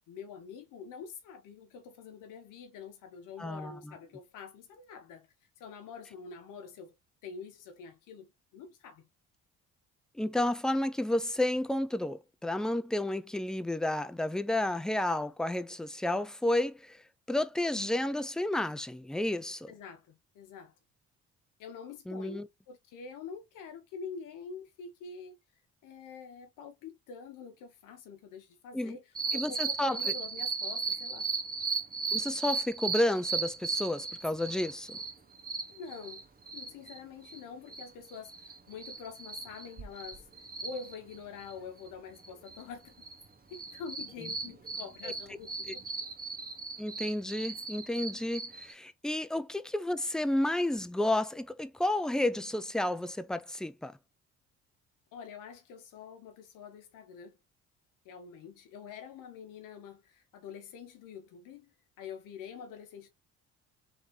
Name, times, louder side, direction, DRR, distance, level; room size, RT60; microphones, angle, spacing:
voice 1, 0.1-5.3 5.6-6.9 7.2-9.0 19.7-20.7 21.6-25.4 25.8-31.3 35.7-36.3 36.5-42.9 43.5-45.8 55.1-57.4 58.0-63.1, left 6 dB, 70° left, 0.9 m, -46 dB
voice 2, 3.4-3.9 10.2-19.7 22.1-22.5 28.7-29.0 29.3-30.0 32.1-35.0 45.0-45.1 45.7-45.8 46.8-53.9, left 1 dB, ahead, 0.5 m, -31 dB
sound 1, 29.1-37.0 37.2-37.4 37.7-41.9 42.2-43.2 43.5-48.7, right 4 dB, 25° right, 1.2 m, -37 dB
3.6 x 3.2 x 4.1 m
supercardioid pair, 65°, 32 cm